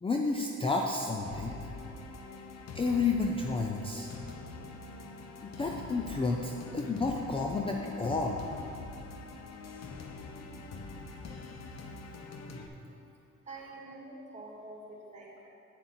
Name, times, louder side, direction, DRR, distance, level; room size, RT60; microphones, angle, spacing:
voice 1, 0.0-1.6 2.7-4.1 5.4-8.4, left 3 dB, 20° left, 1 dB, 0.5 m, -31 dB
sound 1, 1.2-12.7, left 3 dB, 60° left, 0.9 m, -44 dB
voice 2, 13.5-15.5, right 2 dB, 25° right, -3 dB, 2.1 m, -46 dB
9.2 x 7.1 x 4.3 m, 2.7 s
cardioid pair, 90°, 30 cm